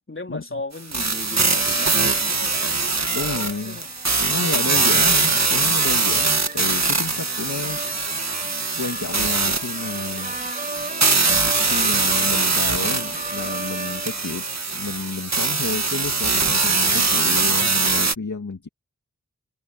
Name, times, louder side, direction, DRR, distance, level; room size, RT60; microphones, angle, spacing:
voice 1, 0.0-3.9, left 2 dB, 40° left, 4.0 m, -37 dB
sound 1, 0.9-18.2, right 4 dB, 60° right, 1.8 m, -22 dB
sound 2, 1.5-15.2, right 2 dB, 30° right, 2.3 m, -37 dB
voice 2, 3.1-3.8 4.3-8.1 8.8-10.4 11.3-14.5 14.7-18.7, left 4 dB, 75° left, 2.2 m, -31 dB
wide cardioid pair, 50°, 30 cm